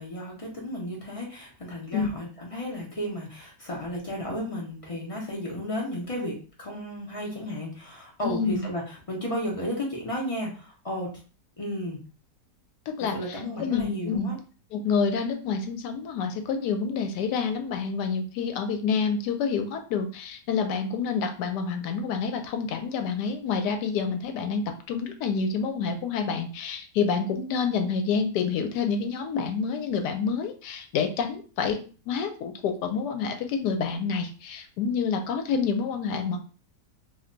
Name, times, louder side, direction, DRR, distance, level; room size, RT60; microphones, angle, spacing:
voice 1, 0.0-11.1 11.6-12.0 13.1-14.4, left 1 dB, 45° left, -3 dB, 0.4 m, -33 dB
voice 2, 8.2-8.6 12.9-14.3 14.7-31.8 32.1-36.4, left 5 dB, 80° left, 6 dB, 1.1 m, -28 dB
2.8 x 2.2 x 3.8 m, 0.38 s
omnidirectional pair, 1.8 m